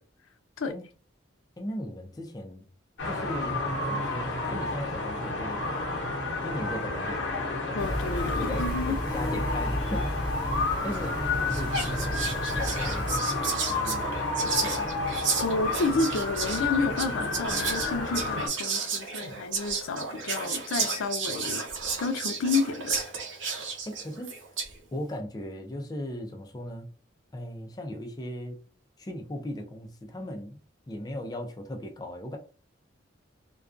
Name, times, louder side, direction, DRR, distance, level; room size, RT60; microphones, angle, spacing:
voice 1, 1.6-2.6 3.0-5.6 6.4-7.3 7.6-7.9 8.4-10.4 10.8-12.2 12.5-14.1 14.4-15.0 23.9-24.3 24.9-26.9 27.3-28.6 29.0-30.6 30.9-32.4, left 1 dB, 20° left, 0.4 m, -37 dB
sound 1, 3.0-18.5, left 2 dB, 65° left, 0.8 m, -31 dB
voice 2, 7.7-9.0 15.4-21.6 22.0-23.0 23.4-23.6, left 3 dB, 80° left, 0.5 m, -30 dB
Cat, 7.8-13.2, equal, 25° right, 1.0 m, -33 dB
Whispering, 10.9-11.1 11.5-24.8, right 5 dB, 70° right, 0.7 m, -33 dB
2.3 x 2.2 x 2.4 m
head